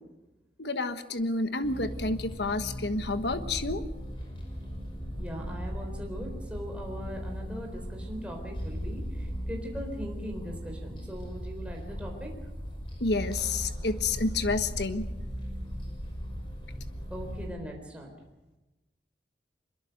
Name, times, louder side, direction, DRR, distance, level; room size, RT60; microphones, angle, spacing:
voice 1, 0.6-3.8 13.0-15.1, left 3 dB, 75° left, 9 dB, 1.4 m, -29 dB
sound 1, 1.6-17.5, equal, 30° left, 5.7 m, -38 dB
voice 2, 5.2-12.3 17.1-18.1, equal, 5° right, 0 dB, 4.0 m, -40 dB
24.0 x 22.0 x 6.6 m, 1.0 s
head